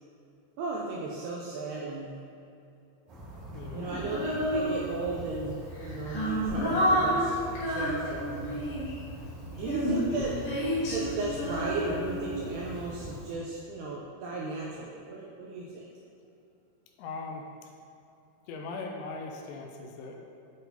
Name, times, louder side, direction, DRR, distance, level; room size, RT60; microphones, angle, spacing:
voice 1, 0.6-2.2 3.7-7.4 7.7-8.6 9.5-10.3 10.9-15.9, right 2 dB, 85° right, -4 dB, 2.3 m, -35 dB
sound 1, 3.1-13.2, equal, 55° right, 2.4 m, -42 dB
voice 2, 3.5-3.9 10.1-10.4 17.0-17.7 18.5-20.2, left 3 dB, 85° left, 2 dB, 2.7 m, -40 dB
Female singing, 4.1-5.2 5.7-9.0 9.6-12.8, equal, 70° left, 3.1 m, -29 dB
9.2 x 4.0 x 2.6 m, 2.7 s
omnidirectional pair, 5.2 m